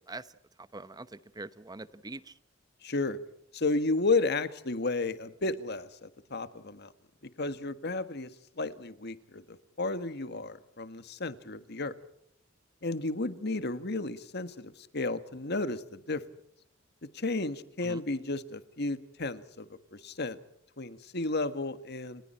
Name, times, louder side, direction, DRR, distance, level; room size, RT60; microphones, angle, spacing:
voice 1, 0.6-2.3 17.8-18.0, right 2 dB, 20° right, 14 dB, 0.9 m, -43 dB
voice 2, 2.8-3.2 3.5-6.9 7.4-8.3 8.6-9.4 9.8-11.9 12.8-16.2 17.1-20.4 20.8-22.2, left 3 dB, 55° left, 12 dB, 1.7 m, -32 dB
30.0 x 28.5 x 4.4 m, 0.67 s
head